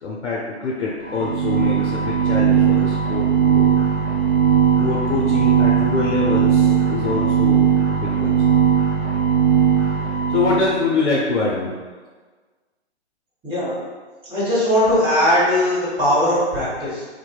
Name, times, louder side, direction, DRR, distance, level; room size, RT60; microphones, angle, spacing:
voice 1, 0.0-3.7 4.8-8.6 10.3-11.7, left 3 dB, 75° left, -4 dB, 0.5 m, -24 dB
sound 1, 1.1-10.7, right 8 dB, 55° right, 1.3 m, -18 dB
voice 2, 13.4-13.7 14.3-17.0, left 1 dB, 15° right, -11 dB, 0.9 m, -19 dB
2.5 x 2.4 x 2.2 m, 1.4 s
figure-of-eight pair, 130°, 35 cm